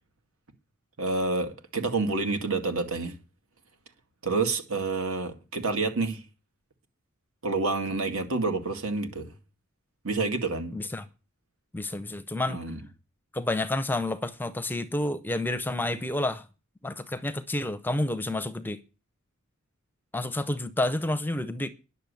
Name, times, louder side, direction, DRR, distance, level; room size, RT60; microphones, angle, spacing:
voice 1, 1.0-3.1 4.2-6.2 7.4-9.3 10.0-10.8 12.5-12.8, right 3 dB, 65° right, 2.2 m, -28 dB
voice 2, 10.7-11.0 11.7-12.6 13.3-16.5 16.8-18.8 20.1-21.7, left 1 dB, 10° left, 0.6 m, -29 dB
10.5 x 6.9 x 8.2 m
head